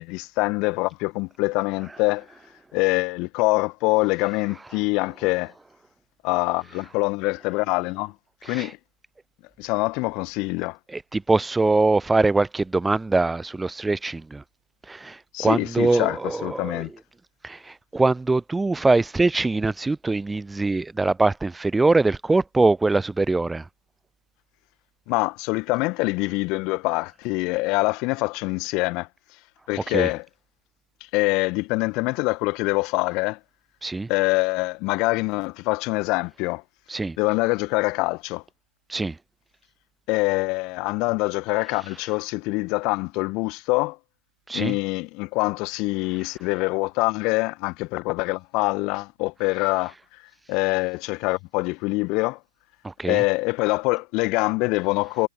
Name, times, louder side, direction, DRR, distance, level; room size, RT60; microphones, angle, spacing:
voice 1, 0.0-2.2 2.7-5.5 6.2-8.1 8.4-8.8 9.6-10.8 15.3-16.9 25.1-29.1 29.7-30.2 31.1-33.4 34.1-36.6 37.2-38.4 40.1-44.0 44.5-49.9 50.5-52.4 53.0-55.3, left 25 dB, 35° left, 1.5 m, -24 dB
voice 2, 10.9-14.4 14.9-16.8 17.4-23.6 29.9-30.1 33.8-34.1 36.9-37.2 38.9-39.1 44.5-44.8 52.8-53.2, right 3 dB, 5° right, 0.4 m, -23 dB
figure-of-eight pair, 115°, 0 cm